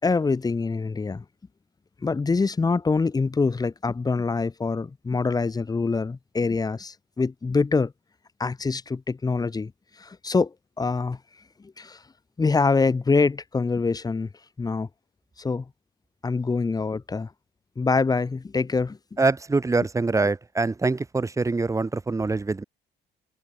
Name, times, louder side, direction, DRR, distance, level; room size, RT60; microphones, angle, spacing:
voice 1, 0.0-1.2 2.0-7.9 8.4-9.7 10.0-11.2 11.6-12.0 12.4-14.3 14.6-14.9 15.4-15.7 16.2-17.3 17.8-19.0, left 4 dB, 20° left, 3.8 m, -25 dB
voice 2, 19.2-22.6, right 3 dB, 15° right, 5.9 m, -24 dB
cardioid pair, 130°, 18 cm